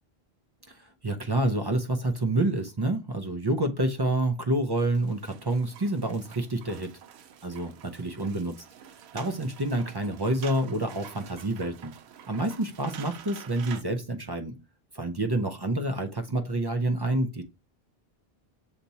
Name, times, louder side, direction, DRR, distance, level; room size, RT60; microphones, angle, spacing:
voice 1, 0.7-6.9 7.4-8.6 9.1-11.9 12.3-14.5 14.9-17.4, right 1 dB, 35° right, 0.4 m, -28 dB
sound 1, 4.7-13.8, right 9 dB, 85° right, 0.8 m, -48 dB
6.7 x 2.9 x 2.7 m
omnidirectional pair, 1.0 m